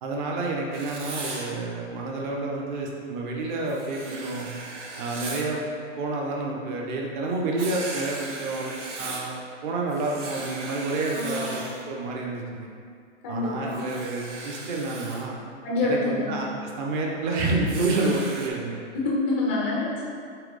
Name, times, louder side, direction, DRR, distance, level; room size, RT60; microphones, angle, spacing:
voice 1, 0.0-4.5 5.0-5.6 6.0-8.7 9.0-9.3 9.6-12.7 13.3-15.4 15.8-18.8, right 2 dB, 40° right, -1 dB, 0.9 m, -29 dB
Writing, 0.7-1.5 3.7-5.5 7.6-9.3 9.9-11.8 13.7-15.2 17.7-18.5, right 3 dB, 70° right, 1.2 m, -37 dB
voice 2, 11.1-11.6 13.2-13.9 15.6-16.3 18.9-20.1, left 2 dB, 10° left, -4 dB, 0.3 m, -27 dB
4.8 x 4.1 x 4.8 m, 2.2 s
hypercardioid pair, 150°, 38 cm